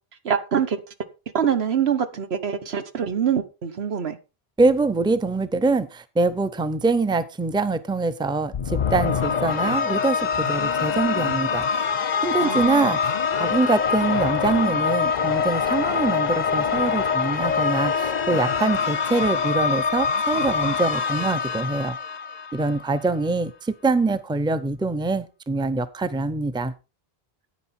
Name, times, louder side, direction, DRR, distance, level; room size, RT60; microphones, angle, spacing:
voice 1, 0.2-0.8 1.3-4.2 12.4-12.9, right 7 dB, 85° right, 1.4 m, -24 dB
voice 2, 4.6-11.8 12.2-13.1 13.4-22.0 22.5-26.7, right 3 dB, 5° right, 0.6 m, -24 dB
sound 1, 8.5-22.9, left 6 dB, 50° left, 0.7 m, -24 dB
9.6 x 9.5 x 4.3 m
omnidirectional pair, 1.0 m